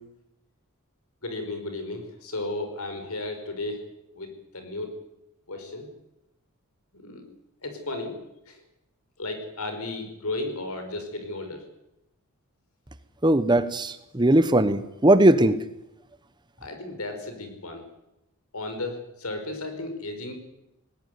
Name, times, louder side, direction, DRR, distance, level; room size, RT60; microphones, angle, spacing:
voice 1, 1.2-5.0 5.5-5.9 6.9-7.3 7.6-8.2 8.5-8.6 9.2-11.6 16.6-17.9 18.5-20.3, left 2 dB, 80° left, 6 dB, 5.2 m, -34 dB
voice 2, 13.2-15.6, right 1 dB, 20° right, 13 dB, 1.0 m, -19 dB
20.0 x 18.0 x 9.6 m, 0.87 s
head